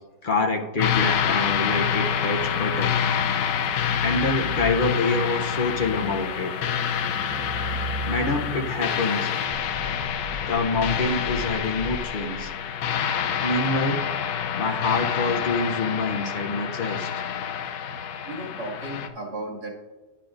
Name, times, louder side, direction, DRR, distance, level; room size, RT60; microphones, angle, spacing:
voice 1, 0.2-3.0 3.5-6.5 8.0-9.3 10.5-12.5 13.4-14.0 14.5-17.1, left 3 dB, 70° left, 2 dB, 0.4 m, -26 dB
sound 1, 0.8-19.1, left 8 dB, 85° left, 1.3 m, -27 dB
sound 2, 3.6-5.0 5.5-12.5, equal, 15° left, 0.5 m, -37 dB
voice 2, 18.3-19.7, right 1 dB, 65° right, -3 dB, 2.7 m, -34 dB
11.0 x 9.9 x 2.5 m, 1.2 s
omnidirectional pair, 1.8 m